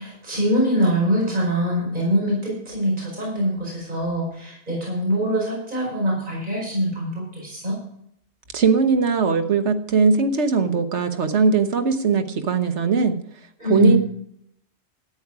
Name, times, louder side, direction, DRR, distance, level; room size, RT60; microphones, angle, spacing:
voice 1, 0.0-7.8 13.6-14.0, equal, 45° right, -4 dB, 5.4 m, -23 dB
voice 2, 8.5-13.1 13.7-14.0, right 5 dB, 85° right, 8 dB, 1.5 m, -19 dB
13.0 x 9.5 x 4.9 m, 0.71 s
omnidirectional pair, 1.2 m